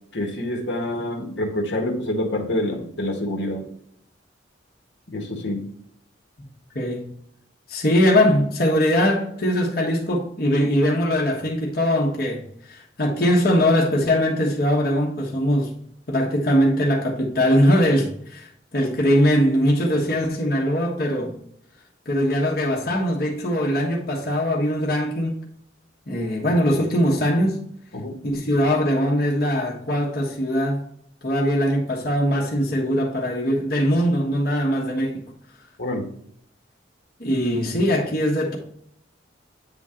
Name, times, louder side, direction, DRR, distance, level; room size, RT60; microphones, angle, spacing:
voice 1, 0.1-3.6 5.1-5.6 27.9-28.2 35.8-36.1, left 1 dB, 70° left, 1.5 m, -27 dB
voice 2, 6.7-7.1 7.7-15.8 16.1-21.3 22.0-25.4 26.1-27.6 28.2-30.8 31.2-35.3 37.2-38.6, equal, 50° left, 1.3 m, -21 dB
9.0 x 3.7 x 4.3 m
head